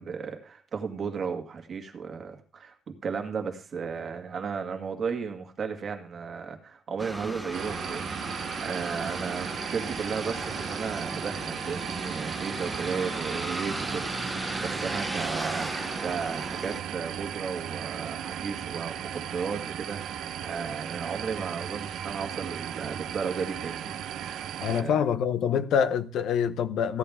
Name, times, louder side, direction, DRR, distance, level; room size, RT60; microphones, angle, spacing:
voice 1, 0.0-20.0 20.4-23.9 24.8-24.9, right 6 dB, 40° right, 1.9 m, -34 dB
sound 1, 7.0-16.8, right 1 dB, ahead, 0.9 m, -36 dB
sound 2, 7.5-24.8, right 10 dB, 80° right, 0.8 m, -36 dB
voice 2, 24.6-27.0, left 7 dB, 75° left, 0.8 m, -25 dB
15.5 x 11.0 x 3.6 m
cardioid pair, 165°, 0 cm